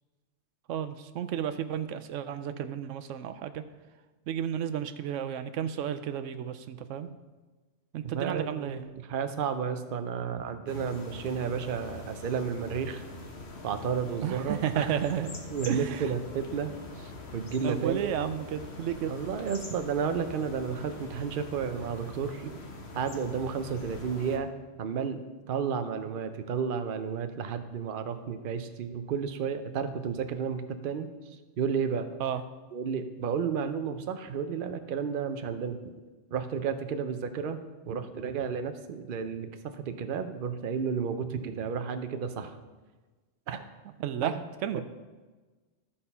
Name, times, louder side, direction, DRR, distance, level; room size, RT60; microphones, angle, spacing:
voice 1, 0.7-3.6 4.3-7.1 7.9-8.8 14.2-15.4 15.6-16.1 17.6-19.2 32.2-32.4 44.0-44.8, right 9 dB, 90° right, 10 dB, 0.9 m, -32 dB
voice 2, 8.0-13.0 13.6-15.0 15.5-16.7 17.0-18.1 19.1-22.6 22.9-24.5 24.8-25.2 25.5-31.1 31.6-32.1 32.7-35.9 36.3-39.5 39.8-42.6 43.5-43.6 44.2-44.4 44.7-44.8, right 6 dB, 50° right, 8 dB, 0.8 m, -32 dB
sound 1, 10.7-24.4, left 2 dB, 60° left, 1.4 m, -43 dB
13.0 x 4.3 x 5.5 m, 1.3 s
omnidirectional pair, 1.2 m